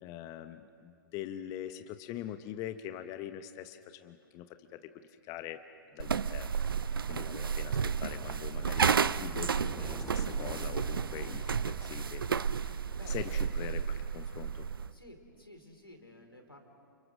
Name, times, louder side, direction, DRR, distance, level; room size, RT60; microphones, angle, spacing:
voice 1, 0.0-4.5 4.7-4.9 5.2-5.6 5.9-12.8 13.1-14.7, left 11 dB, 30° left, 9 dB, 0.9 m, -43 dB
sound 1, 6.0-14.9, right 6 dB, 70° right, 0.6 m, -32 dB
sound 2, 6.9-13.6, equal, ahead, 0.9 m, -52 dB
voice 2, 12.9-13.5 14.9-16.6, left 1 dB, 85° left, 3 dB, 4.3 m, -53 dB
30.0 x 29.5 x 6.3 m, 2.6 s
figure-of-eight pair, 110°, 12 cm